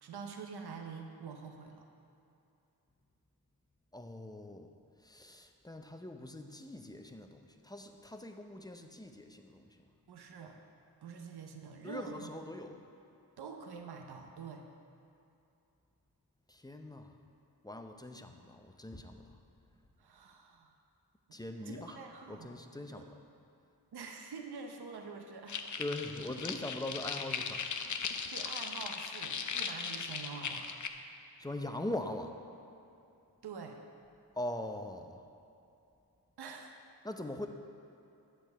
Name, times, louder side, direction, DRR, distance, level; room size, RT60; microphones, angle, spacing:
voice 1, 0.0-1.9 10.1-10.6 11.0-12.3 13.4-14.7 20.0-20.7 21.3-22.5 22.9-23.1 23.9-25.8 28.3-30.7 33.4-33.8 36.4-36.7, right 5 dB, 70° right, 4 dB, 0.8 m, -46 dB
voice 2, 3.9-4.7 5.0-9.9 11.8-12.8 16.5-17.1 17.6-19.4 21.3-22.0 22.3-23.2 25.8-27.7 31.4-32.3 34.4-35.2 37.0-37.5, left 1 dB, 10° left, 5 dB, 0.6 m, -42 dB
sound 1, 25.5-30.9, left 6 dB, 50° left, 0.6 m, -38 dB
8.2 x 4.6 x 6.6 m, 2.7 s
cardioid pair, 45°, 40 cm